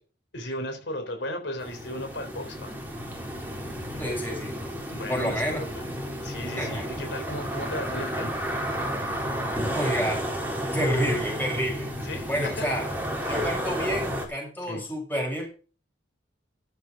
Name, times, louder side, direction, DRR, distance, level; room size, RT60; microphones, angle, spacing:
voice 1, 0.3-2.8 4.9-5.8 6.2-8.5 12.0-12.7 13.2-13.5 14.7-14.8, left 1 dB, 75° left, 5 dB, 3.8 m, -35 dB
sound 1, 1.6-14.3, equal, 10° right, 4.1 m, -32 dB
voice 2, 4.0-4.6 5.1-5.6 6.6-7.0 9.7-10.2 10.7-11.9 12.3-12.9 13.3-15.5, equal, 10° left, 0 dB, 6.9 m, -29 dB
13.0 x 8.2 x 5.2 m, 0.35 s
head